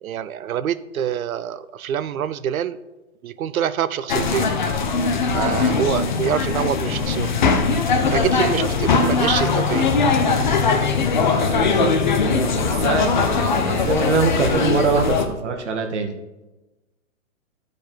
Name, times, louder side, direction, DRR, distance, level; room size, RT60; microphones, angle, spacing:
voice 1, 0.0-2.8 3.2-4.5 5.3-7.3 8.1-9.9, right 9 dB, 90° right, 16 dB, 0.6 m, -25 dB
sound 1, 4.1-15.3, left 4 dB, 35° left, 0.6 m, -20 dB
voice 2, 11.3-16.1, right 4 dB, 60° right, 5 dB, 1.3 m, -24 dB
10.5 x 4.9 x 4.3 m, 1.1 s
hypercardioid pair, 170°, 41 cm